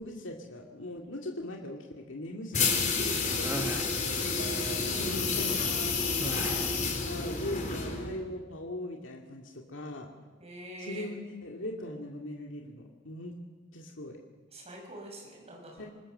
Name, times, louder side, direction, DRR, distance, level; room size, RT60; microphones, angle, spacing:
voice 1, 0.0-4.0 4.9-10.1 10.8-13.4 13.7-14.2 15.8-15.9, left 1 dB, 70° left, 1 dB, 2.4 m, -40 dB
sound 1, 2.5-8.2, left 4 dB, 40° left, 4.1 m, -30 dB
sound 2, 3.2-5.3, right 3 dB, 90° right, 5.0 m, -47 dB
sound 3, 3.4-3.9 6.2-6.9, right 1 dB, 10° right, 1.4 m, -37 dB
voice 2, 4.5-5.1 10.4-11.1 14.5-15.9, right 1 dB, 35° right, -1 dB, 6.8 m, -45 dB
26.5 x 20.0 x 6.7 m, 1.3 s
head